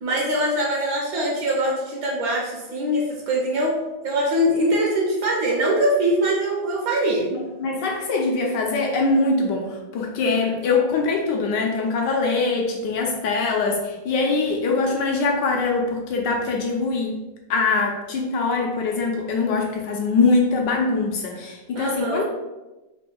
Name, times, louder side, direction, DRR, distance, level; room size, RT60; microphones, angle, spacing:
voice 1, 0.0-3.8 4.0-7.3 21.7-22.2, right 1 dB, 70° right, -2 dB, 1.4 m, -22 dB
voice 2, 7.3-9.7 9.9-17.1 17.5-22.2, left 3 dB, 75° left, 1 dB, 1.0 m, -23 dB
3.6 x 2.2 x 4.2 m, 1.1 s
omnidirectional pair, 2.2 m